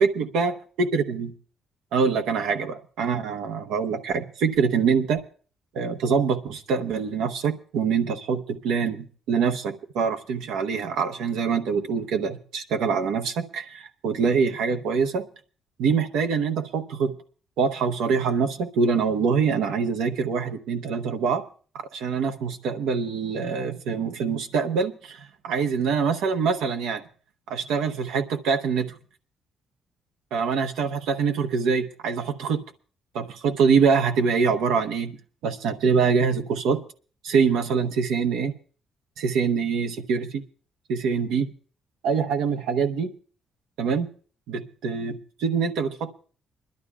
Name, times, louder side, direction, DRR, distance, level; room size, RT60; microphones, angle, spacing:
voice 1, 0.0-1.3 1.9-5.2 5.7-15.2 15.8-17.2 17.6-21.4 21.7-27.0 27.5-29.0 30.3-32.6 33.1-35.2 35.4-36.8 37.2-38.5 39.2-40.4 40.9-41.5 42.0-43.1 43.8-44.1 44.5-46.1, right 5 dB, 90° right, 6 dB, 0.9 m, -24 dB
28.5 x 12.0 x 2.3 m, 0.41 s
cardioid pair, 90°, 0 cm